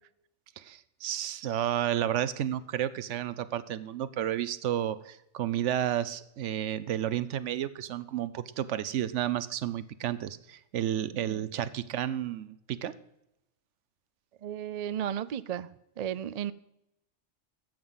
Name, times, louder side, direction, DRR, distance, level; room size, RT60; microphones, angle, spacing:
voice 1, 0.6-12.9, right 11 dB, 85° right, 1.0 m, -31 dB
voice 2, 14.4-15.7 16.0-16.5, right 9 dB, 60° right, 0.4 m, -34 dB
13.5 x 7.9 x 5.5 m
omnidirectional pair, 1.2 m